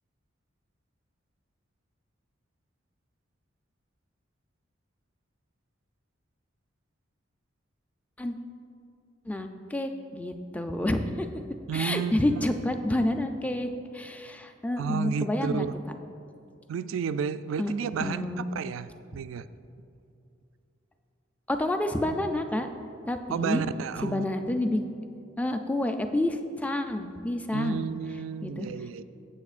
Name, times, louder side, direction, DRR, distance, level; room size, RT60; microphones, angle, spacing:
voice 1, 9.3-11.3 11.7-15.6 17.6-17.7 18.0-18.5 21.5-22.7 23.1-23.6 24.0-24.8 25.4-27.9 28.4-28.7, left 1 dB, 5° left, 6 dB, 0.4 m, -29 dB
voice 2, 11.7-12.4 14.8-15.7 16.7-19.5 23.3-24.3 27.5-29.0, right 6 dB, 85° right, 13 dB, 0.3 m, -32 dB
14.0 x 7.8 x 2.4 m, 2.6 s
head